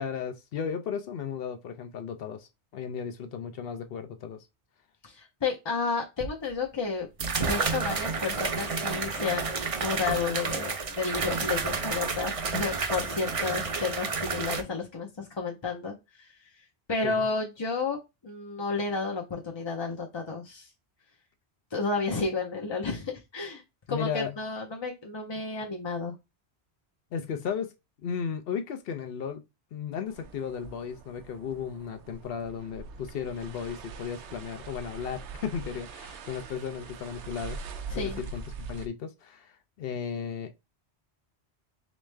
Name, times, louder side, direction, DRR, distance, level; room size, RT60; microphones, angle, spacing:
voice 1, 0.0-4.5 17.0-17.3 23.9-24.4 27.1-27.7 28.0-29.4 29.7-37.6 37.9-40.7, left 7 dB, 65° left, 0.7 m, -35 dB
voice 2, 5.0-7.1 7.4-16.3 16.9-18.0 18.2-20.7 21.7-23.6 23.9-26.1 37.9-38.2, left 4 dB, 35° left, 0.5 m, -31 dB
sound 1, 6.2-6.3 7.2-14.6, right 4 dB, 40° right, 0.5 m, -30 dB
sound 2, 30.1-38.9, right 4 dB, 85° right, 0.9 m, -43 dB
3.4 x 3.1 x 3.3 m
omnidirectional pair, 1.1 m